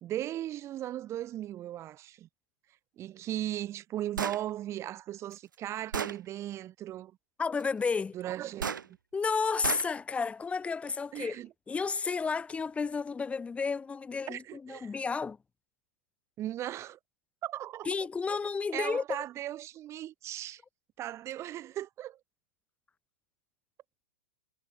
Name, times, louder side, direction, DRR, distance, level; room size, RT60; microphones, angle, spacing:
voice 1, 0.0-2.3 3.0-7.1 8.1-8.8 11.1-11.5 14.3-14.9 16.4-17.0 17.4-17.9 18.3-18.4 18.7-20.6 21.0-22.2, right 13 dB, 25° right, 1.1 m, -37 dB
Gunshot gunfire, 4.2-4.4 5.3-5.4 5.9-6.2 8.6-8.8 9.6-9.9, right 6 dB, 75° right, 0.8 m, -33 dB
voice 2, 7.4-8.2 9.1-11.4 11.7-15.4 17.8-19.2, left 5 dB, 10° left, 1.1 m, -32 dB
figure-of-eight pair, 110°, 11 cm